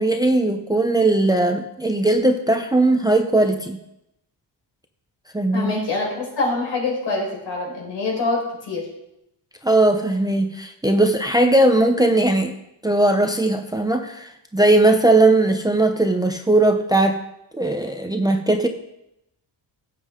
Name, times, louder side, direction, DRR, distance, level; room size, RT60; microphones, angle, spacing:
voice 1, 0.0-3.8 5.3-5.7 9.6-12.6 12.8-17.2 17.5-18.7, right 2 dB, 10° right, 5 dB, 0.6 m, -18 dB
voice 2, 5.5-8.4 8.7-8.9, left 3 dB, 75° left, -2 dB, 5.2 m, -25 dB
16.5 x 7.5 x 3.7 m, 0.84 s
wide cardioid pair, 170°, 44 cm